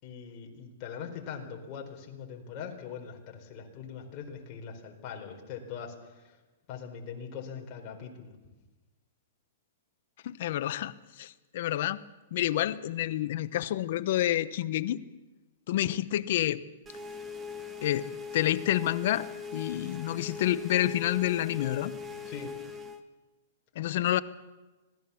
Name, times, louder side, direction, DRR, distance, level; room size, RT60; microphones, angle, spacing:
voice 1, 0.0-6.4 6.7-8.3 22.2-22.5, left 7 dB, 35° left, 2 dB, 4.4 m, -42 dB
voice 2, 10.2-12.0 12.3-15.0 15.7-16.6 17.8-18.0 18.3-19.3 19.5-21.9 23.7-24.2, left 13 dB, 60° left, 14 dB, 0.9 m, -28 dB
sound 1, 16.8-23.0, left 6 dB, 15° right, 1.6 m, -41 dB
25.5 x 19.0 x 7.2 m, 1.2 s
hypercardioid pair, 145°, 0 cm